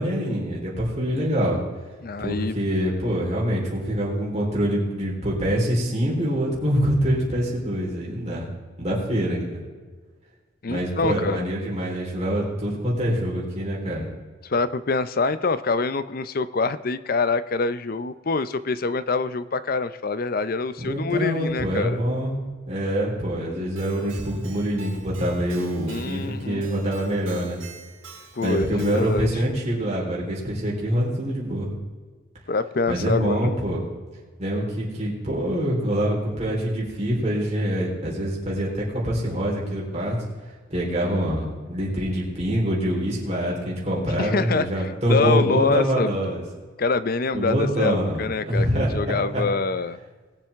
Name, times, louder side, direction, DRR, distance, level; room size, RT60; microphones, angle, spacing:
voice 1, 0.0-1.6 2.2-8.5 8.8-9.6 10.7-14.1 20.8-22.4 22.7-27.6 28.4-31.7 32.9-33.8 34.4-40.2 40.7-46.4 47.3-49.4, equal, 35° right, -4 dB, 3.9 m, -25 dB
voice 2, 2.0-2.6 10.6-11.5 14.4-22.0 25.9-26.7 28.3-29.3 32.5-33.5 44.2-46.1 46.8-50.0, left 4 dB, 45° left, 14 dB, 0.5 m, -25 dB
Keyboard (musical), 23.8-29.4, right 4 dB, 85° right, 4.2 m, -45 dB
21.0 x 7.6 x 3.6 m, 1.4 s
head